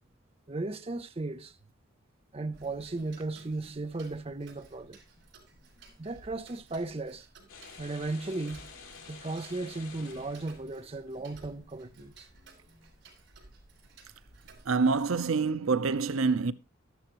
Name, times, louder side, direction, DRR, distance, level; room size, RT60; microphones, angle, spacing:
voice 1, 0.5-1.5 2.3-5.0 6.0-7.3 7.8-12.3, right 2 dB, 30° right, 0.5 m, -36 dB
sound 1, 2.3-4.9 5.2-5.3 5.5-7.1 7.4-7.5 7.7-13.0, equal, 45° left, 6.9 m, -65 dB
Tick-tock, 2.5-15.3, right 3 dB, 60° right, 4.8 m, -57 dB
sound 2, 7.5-11.1, left 5 dB, 80° left, 4.4 m, -50 dB
voice 2, 14.7-16.5, right 4 dB, 85° right, 0.7 m, -26 dB
13.0 x 11.5 x 3.0 m
head